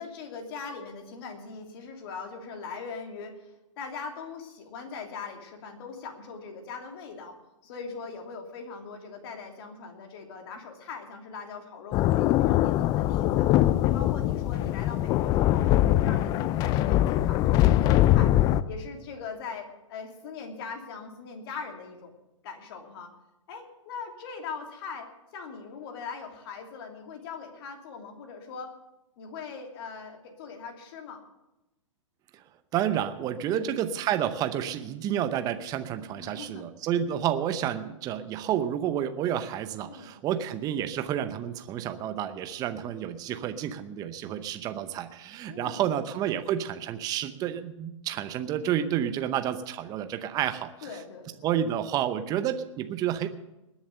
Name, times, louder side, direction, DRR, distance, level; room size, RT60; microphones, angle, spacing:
voice 1, 0.0-7.4 7.6-13.5 13.8-18.3 18.7-22.1 22.4-23.1 23.5-28.7 29.2-31.2 33.5-33.8 36.2-36.6 39.8-40.1 45.5-45.9 50.8-51.5, left 5 dB, 45° left, 3 dB, 2.9 m, -41 dB
sound 1, 11.9-18.6, left 14 dB, 20° left, 0.4 m, -22 dB
voice 2, 32.7-50.7 51.4-53.3, right 10 dB, 20° right, 10 dB, 0.7 m, -30 dB
20.5 x 7.2 x 6.7 m, 0.96 s
hypercardioid pair, 130°, 17 cm